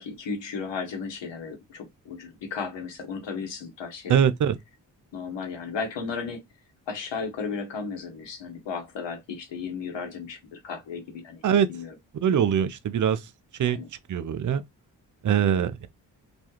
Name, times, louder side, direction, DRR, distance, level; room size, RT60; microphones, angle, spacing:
voice 1, 0.0-4.3 5.1-6.4 6.9-11.4 11.7-11.9 13.6-13.9 15.5-15.7, left 5 dB, 70° left, 1.1 m, -35 dB
voice 2, 4.1-4.5 11.4-11.7 12.2-13.2 13.6-13.8 14.1-14.6 15.2-15.9, right 8 dB, 45° right, 0.5 m, -22 dB
2.4 x 2.3 x 2.9 m
supercardioid pair, 40°, 45 cm